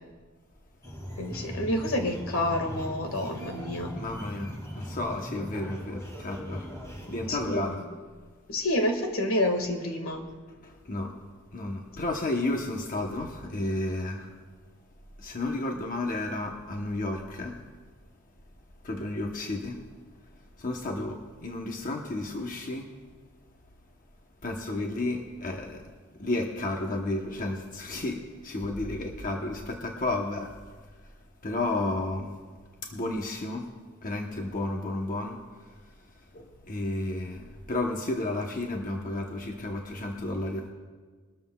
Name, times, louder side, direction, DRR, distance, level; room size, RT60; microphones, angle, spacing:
sound 1, 0.8-7.5, equal, 15° left, 2.2 m, -39 dB
voice 1, 1.2-4.0 7.3-7.8 8.5-10.2, left 1 dB, 75° left, 4 dB, 1.8 m, -28 dB
voice 2, 3.9-6.7 7.1-7.8 10.6-11.2 11.5-14.3 15.2-17.6 18.8-19.8 20.6-22.9 24.4-30.5 31.4-32.3 32.9-33.7 34.0-35.4 35.7-35.8 36.3-40.7, left 2 dB, 40° left, 1 dB, 0.9 m, -32 dB
22.5 x 13.0 x 2.3 m, 1.5 s
head